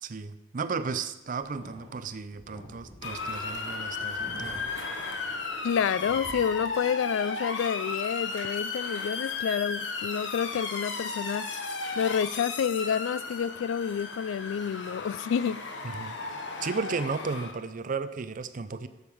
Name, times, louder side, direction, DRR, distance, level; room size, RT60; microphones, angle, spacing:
voice 1, 0.0-4.7 15.8-16.2 16.6-18.9, right 4 dB, 45° right, 12 dB, 0.5 m, -34 dB
sound 1, 1.4-5.7 6.0-6.8, equal, 30° left, 3.1 m, -48 dB
Motor vehicle (road) / Siren, 3.0-17.5, left 4 dB, 65° left, 1.1 m, -35 dB
voice 2, 5.6-11.7 12.0-15.6, left 7 dB, 85° left, 19 dB, 0.3 m, -29 dB
7.8 x 5.5 x 6.9 m, 0.99 s
head